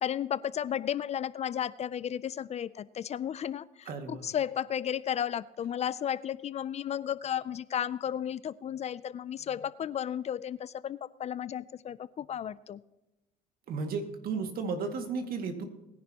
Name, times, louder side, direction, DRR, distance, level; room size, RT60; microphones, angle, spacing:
voice 1, 0.0-12.8, left 9 dB, 40° left, 18 dB, 0.4 m, -33 dB
voice 2, 3.9-4.3 13.7-15.6, right 4 dB, 60° right, 5 dB, 2.0 m, -34 dB
20.5 x 10.5 x 2.9 m, 0.97 s
cardioid pair, 110°, 17 cm